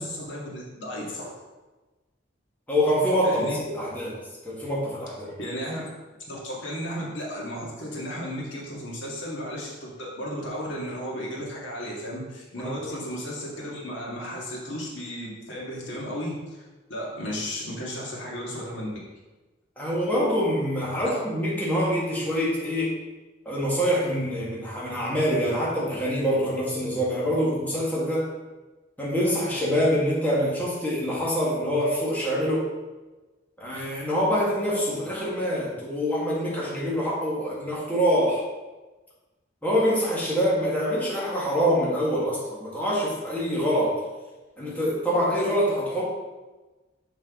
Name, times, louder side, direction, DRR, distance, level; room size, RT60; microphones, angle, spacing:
voice 1, 0.0-1.3 3.2-3.6 5.2-5.8 6.3-18.9 21.0-21.1, equal, 75° left, -4 dB, 1.9 m, -34 dB
voice 2, 2.7-3.5 3.7-4.2 4.4-5.3 12.6-12.9 19.8-22.9 23.5-28.3 29.0-32.7 33.6-38.4 39.6-44.0 44.6-46.1, equal, 10° left, -7 dB, 1.8 m, -25 dB
6.6 x 6.0 x 3.7 m, 1.2 s
head